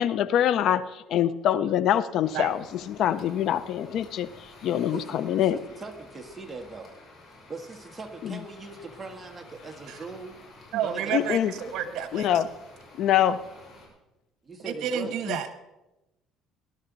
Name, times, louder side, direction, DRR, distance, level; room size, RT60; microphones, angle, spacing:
voice 1, 0.0-5.6 8.2-8.4 11.1-11.5 12.1-12.5 13.0-13.4 15.3-15.4, left 10 dB, 60° left, 16 dB, 0.6 m, -25 dB
sound 1, 2.2-13.9, left 2 dB, 35° left, 5.8 m, -50 dB
voice 2, 5.5-6.9 7.5-10.4 10.8-11.3 14.4-15.2, right 3 dB, 15° right, 2 dB, 1.5 m, -40 dB
voice 3, 10.7-12.3 14.8-15.5, right 9 dB, 70° right, 10 dB, 1.2 m, -30 dB
20.0 x 11.5 x 4.0 m, 0.99 s
cardioid pair, 130°, 0 cm